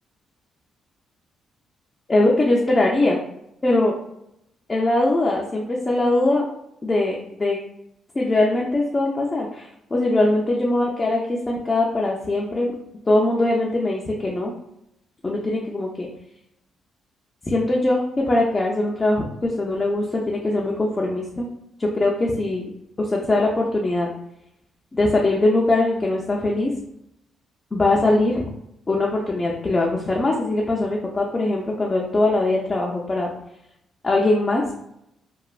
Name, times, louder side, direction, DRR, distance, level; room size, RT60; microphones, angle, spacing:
voice 1, 2.1-3.2 3.6-3.9 4.7-6.5 6.8-7.6 8.1-12.7 13.1-14.5 15.2-16.1 17.5-21.5 21.8-22.6 23.0-24.1 24.9-26.7 27.7-28.4 28.9-33.3 34.0-34.6, left 2 dB, 25° left, -2 dB, 0.4 m, -21 dB
3.1 x 2.1 x 2.4 m, 0.81 s
cardioid pair, 90°, 0 cm